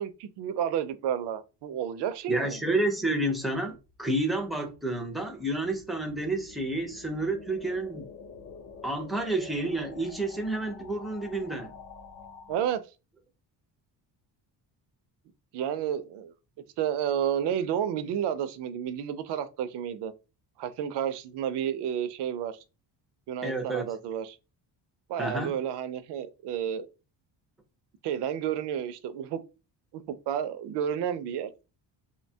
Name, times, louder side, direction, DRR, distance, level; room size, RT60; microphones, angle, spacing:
voice 1, 0.0-2.6 12.5-12.8 15.5-16.3 16.8-20.1 20.6-22.6 23.3-24.4 25.1-26.9 28.0-29.4 30.3-31.5, right 9 dB, 70° right, 0.5 m, -31 dB
voice 2, 2.3-8.1 8.8-11.7 23.4-23.9 25.2-25.5, right 2 dB, ahead, 0.4 m, -30 dB
sound 1, 3.7-12.7, left 5 dB, 45° left, 0.6 m, -48 dB
2.7 x 2.2 x 2.7 m
cardioid pair, 135°, 43 cm